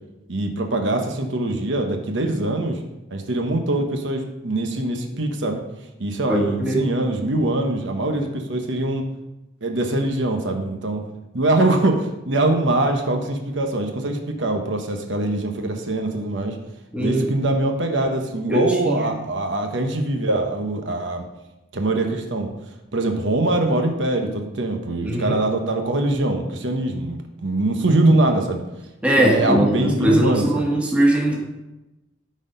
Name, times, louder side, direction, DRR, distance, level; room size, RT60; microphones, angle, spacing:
voice 1, 0.3-2.8 3.1-5.6 6.0-9.0 9.6-11.0 11.3-16.6 17.0-21.2 21.7-22.5 22.9-28.6 29.2-30.7, right 2 dB, 65° right, 4 dB, 1.1 m, -23 dB
voice 2, 6.3-6.8 16.9-17.3 18.5-19.2 25.0-25.4 29.0-31.4, right 1 dB, 5° right, -2 dB, 1.4 m, -20 dB
13.0 x 4.3 x 5.2 m, 0.99 s
head